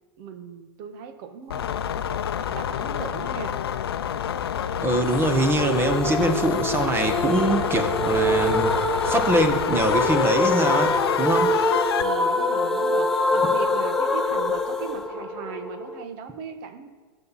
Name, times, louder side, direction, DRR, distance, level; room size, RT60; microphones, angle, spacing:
voice 1, 0.2-1.7 2.4-3.5 12.0-16.9, right 6 dB, 50° right, 9 dB, 1.5 m, -38 dB
sound 1, 1.5-12.0, left 9 dB, 75° left, 0.7 m, -27 dB
voice 2, 4.8-8.7 9.0-11.5, right 1 dB, 15° right, 7 dB, 1.3 m, -23 dB
sound 2, 5.1-16.0, left 1 dB, 5° left, 0.9 m, -25 dB
21.0 x 7.2 x 4.2 m, 1.3 s
hypercardioid pair, 105°, 13 cm